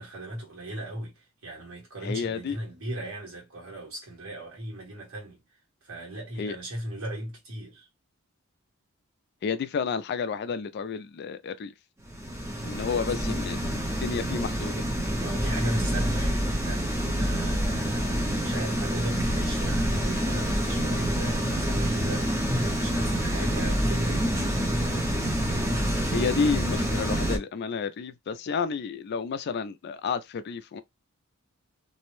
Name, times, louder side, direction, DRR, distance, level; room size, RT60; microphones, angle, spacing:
voice 1, 0.0-5.4 5.8-7.9 13.2-13.3 15.2-24.3, right 1 dB, 85° right, 1.3 m, -38 dB
voice 2, 2.0-2.6 6.4-6.6 9.4-11.7 12.6-14.8 26.1-30.8, left 5 dB, 50° left, 0.3 m, -31 dB
sound 1, 12.1-27.4, equal, 15° right, 0.6 m, -27 dB
2.6 x 2.0 x 3.0 m
head